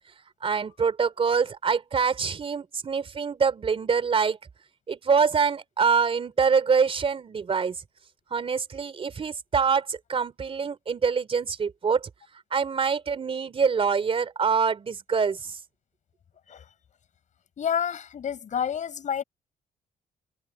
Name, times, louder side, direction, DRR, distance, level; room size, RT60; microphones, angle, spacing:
voice 1, 0.4-4.4 4.9-7.8 8.3-12.1 12.5-15.6, right 6 dB, 40° right, 3.4 m, -25 dB
voice 2, 17.6-19.2, left 8 dB, 55° left, 7.6 m, -29 dB
cardioid pair, 120°, 15 cm